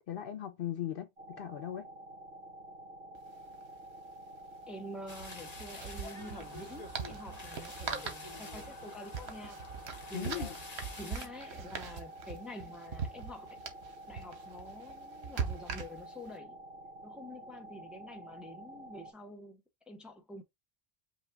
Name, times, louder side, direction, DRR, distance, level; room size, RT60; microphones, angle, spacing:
voice 1, 0.1-1.9 10.1-10.6, left 10 dB, 65° left, 0.8 m, -38 dB
sound 1, 1.2-19.1, right 1 dB, 65° right, 2.0 m, -50 dB
sound 2, 3.1-3.2 3.5-3.6 5.1-16.3, right 6 dB, 80° right, 1.2 m, -42 dB
voice 2, 4.7-9.6 10.1-10.5 11.0-13.6 14.1-16.6 17.0-20.4, left 1 dB, ahead, 0.7 m, -47 dB
sound 3, 5.1-11.3, left 3 dB, 40° left, 1.1 m, -48 dB
5.5 x 2.3 x 3.5 m
omnidirectional pair, 1.1 m